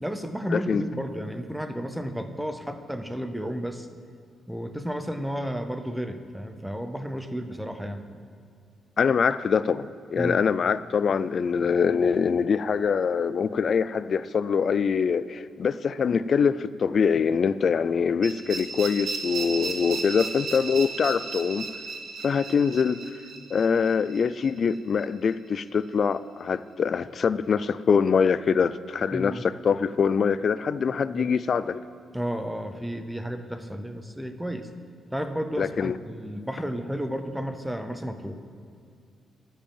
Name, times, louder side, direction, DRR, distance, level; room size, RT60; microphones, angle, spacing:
voice 1, 0.0-3.9 4.5-8.0 10.2-10.4 29.1-29.4 31.1-31.3 32.1-34.7 35.1-38.4, equal, ahead, 8 dB, 0.6 m, -32 dB
voice 2, 0.5-0.8 9.0-21.6 22.2-23.0 23.5-31.8 35.6-36.0, left 6 dB, 40° left, 16 dB, 0.3 m, -24 dB
sound 1, 18.2-25.0, right 4 dB, 45° right, 1.7 m, -35 dB
13.0 x 5.4 x 8.8 m, 2.3 s
wide cardioid pair, 175°, 0 cm